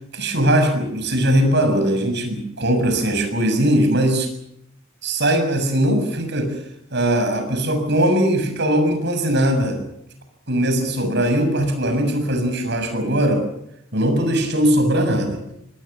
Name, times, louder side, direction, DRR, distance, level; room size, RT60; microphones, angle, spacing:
voice 1, 0.1-4.3 5.0-6.6 6.9-9.8 10.5-13.4 13.9-15.4, right 1 dB, 55° right, 6 dB, 7.0 m, -20 dB
26.5 x 20.0 x 7.3 m, 0.79 s
head